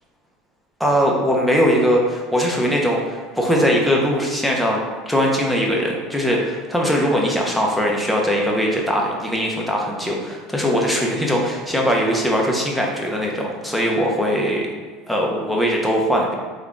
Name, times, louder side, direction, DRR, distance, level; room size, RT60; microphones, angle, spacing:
voice 1, 0.8-4.8 5.1-14.7 15.1-16.3, equal, ahead, -2 dB, 0.7 m, -20 dB
3.5 x 2.4 x 3.7 m, 1.5 s
supercardioid pair, 105°, 0 cm